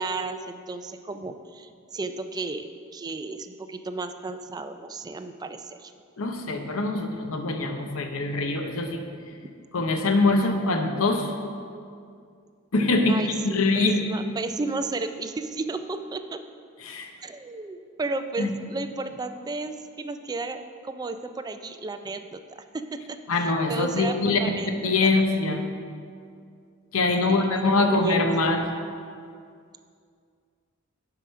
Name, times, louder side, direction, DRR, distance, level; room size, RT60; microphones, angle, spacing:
voice 1, 0.0-2.7 2.9-5.9 13.1-16.4 17.2-22.4 22.7-25.1 27.2-28.5, right 3 dB, 20° right, 8 dB, 0.3 m, -33 dB
voice 2, 6.2-9.0 9.7-11.3 12.7-13.2 13.4-14.0 16.8-17.1 18.4-18.5 23.3-24.4 24.8-25.6 26.9-28.7, left 3 dB, 75° left, 5 dB, 0.8 m, -23 dB
7.6 x 4.9 x 5.6 m, 2.3 s
head